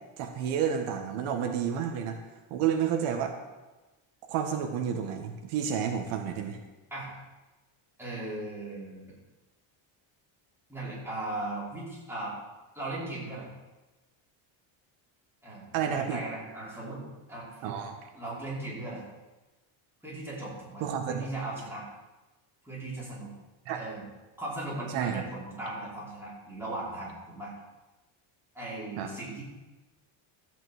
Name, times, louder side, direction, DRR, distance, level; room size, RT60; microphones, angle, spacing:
voice 1, 0.2-2.2 2.5-3.3 4.3-6.6 15.7-16.2 17.6-18.0 20.8-21.3 23.7-23.9 24.9-25.2 29.0-29.1, right 8 dB, 85° right, 4 dB, 1.9 m, -30 dB
voice 2, 8.0-9.1 10.7-12.3 12.7-13.5 15.4-17.0 17.3-17.7 18.1-19.0 20.0-21.8 22.6-23.3 23.7-24.0 24.4-27.5 28.5-29.4, right 2 dB, 5° right, -8 dB, 5.4 m, -38 dB
14.0 x 6.0 x 8.3 m, 1.1 s
cardioid pair, 155°, 50 cm